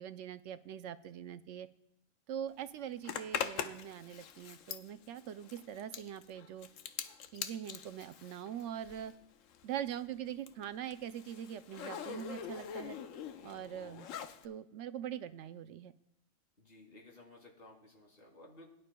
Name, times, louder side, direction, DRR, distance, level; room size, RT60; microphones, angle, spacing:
voice 1, 0.0-1.7 2.3-6.7 7.3-9.1 9.6-13.0 13.4-14.1 14.4-15.9, right 10 dB, 70° right, 12 dB, 0.8 m, -42 dB
Zipper (clothing), 3.0-9.2 9.5-14.5, left 8 dB, 75° left, 1.0 m, -43 dB
voice 2, 16.6-18.7, left 2 dB, 45° left, 0 dB, 2.8 m, -56 dB
21.0 x 11.0 x 2.2 m, 0.79 s
omnidirectional pair, 1.4 m